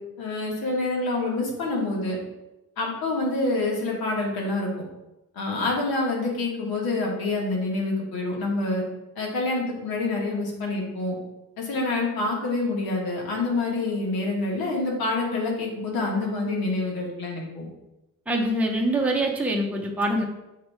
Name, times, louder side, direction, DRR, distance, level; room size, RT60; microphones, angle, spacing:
voice 1, 0.2-2.2 2.8-4.7 5.3-8.8 9.1-11.2 11.6-17.7, left 2 dB, 85° left, -1 dB, 1.8 m, -27 dB
voice 2, 18.3-20.2, right 1 dB, 5° right, -1 dB, 1.0 m, -24 dB
6.5 x 3.4 x 4.8 m, 0.96 s
cardioid pair, 95°, 36 cm